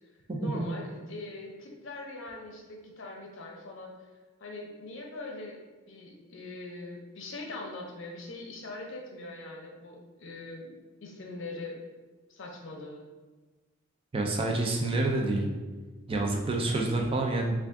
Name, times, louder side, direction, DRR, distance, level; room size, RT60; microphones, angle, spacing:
voice 1, 0.4-3.9 4.4-5.6 5.9-11.8 12.3-13.0, left 2 dB, 60° left, 1 dB, 0.6 m, -42 dB
voice 2, 14.1-15.5 16.1-17.5, right 2 dB, 25° right, 0 dB, 0.4 m, -28 dB
3.4 x 2.4 x 3.5 m, 1.3 s
head